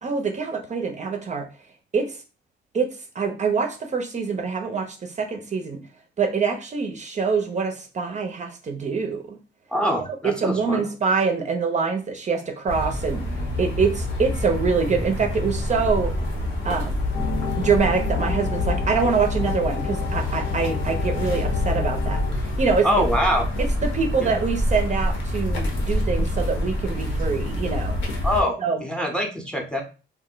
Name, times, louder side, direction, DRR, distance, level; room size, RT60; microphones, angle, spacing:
voice 1, 0.0-1.5 1.9-2.2 2.7-2.9 3.1-5.8 6.2-9.4 10.2-13.2 13.6-16.1 16.6-17.0 17.6-22.2 22.6-22.9 23.8-28.0 28.6-28.8, right 5 dB, 35° right, 4 dB, 0.5 m, -25 dB
voice 2, 9.7-10.8 22.8-23.4 24.2-24.3 28.2-29.8, equal, 5° left, 4 dB, 0.7 m, -24 dB
sound 1, 12.7-28.4, left 1 dB, 70° left, 1.0 m, -26 dB
sound 2, 17.1-22.3, left 7 dB, 40° left, 0.7 m, -31 dB
2.5 x 2.0 x 3.8 m, 0.34 s
cardioid pair, 90°, 20 cm